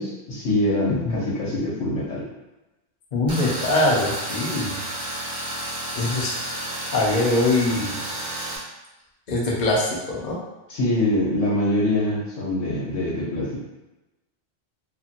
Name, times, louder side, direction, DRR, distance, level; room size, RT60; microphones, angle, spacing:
voice 1, 0.0-2.3 10.7-13.6, left 1 dB, 85° left, -4 dB, 1.2 m, -24 dB
voice 2, 3.1-4.8 6.0-6.3 6.9-8.0 9.3-10.4, left 2 dB, 50° left, -4 dB, 0.7 m, -22 dB
Tools, 3.3-8.6, right 1 dB, 25° right, 0.7 m, -31 dB
2.6 x 2.6 x 2.5 m, 1.0 s
omnidirectional pair, 1.2 m